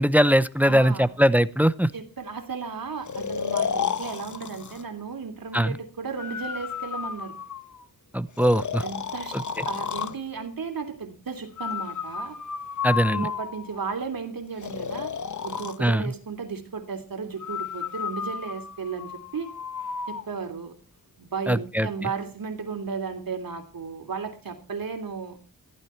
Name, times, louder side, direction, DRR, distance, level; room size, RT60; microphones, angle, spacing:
voice 1, 0.0-1.9 5.5-5.8 8.1-8.8 12.8-13.3 15.8-16.0 21.5-21.9, equal, 5° right, 16 dB, 0.7 m, -21 dB
voice 2, 0.6-1.1 1.9-7.4 8.8-9.4 9.6-12.4 13.1-15.1 15.4-19.5 20.1-20.7 21.2-25.4, right 5 dB, 70° right, 7 dB, 3.1 m, -34 dB
Breathing, 3.1-4.8 6.2-7.8 8.4-10.2 11.6-13.8 14.6-15.8 17.4-20.3, left 6 dB, 55° left, 1.1 m, -32 dB
15.0 x 13.0 x 4.5 m, 0.36 s
wide cardioid pair, 85°, 36 cm